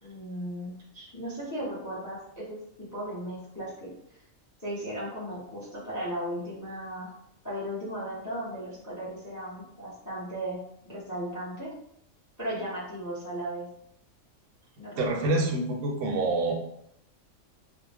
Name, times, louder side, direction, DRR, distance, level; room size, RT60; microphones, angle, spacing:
voice 1, 0.0-2.6 2.9-3.9 4.6-7.1 7.4-10.6 10.9-11.7 12.4-13.7 14.8-15.5, right 1 dB, 20° left, -7 dB, 0.6 m, -36 dB
voice 2, 15.0-16.5, right 2 dB, 70° right, 2 dB, 0.9 m, -26 dB
2.4 x 2.0 x 3.3 m, 0.74 s
omnidirectional pair, 1.4 m